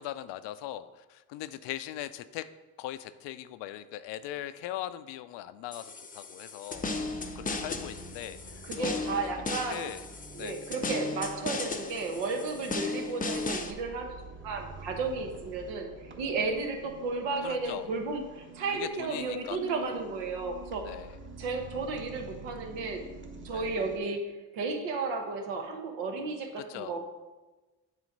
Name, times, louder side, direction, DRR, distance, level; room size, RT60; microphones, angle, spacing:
voice 1, 0.0-2.5 2.8-6.9 7.3-9.3 9.7-10.1 10.4-10.6 12.6-12.7 17.4-17.9 18.7-20.0 20.8-21.2 23.5-23.7 26.6-27.0, left 13 dB, 75° left, 13 dB, 0.5 m, -40 dB
sound 1, 5.7-13.7, left 3 dB, 20° left, 0.6 m, -36 dB
sound 2, 6.7-24.0, right 3 dB, 25° right, 1.0 m, -47 dB
voice 2, 8.6-9.9 10.3-14.2 14.4-15.9 16.2-20.9 21.4-23.0 23.4-24.2 24.5-27.0, right 3 dB, 90° right, 3 dB, 1.1 m, -33 dB
7.5 x 3.1 x 5.2 m, 1.2 s
supercardioid pair, 75°, 43 cm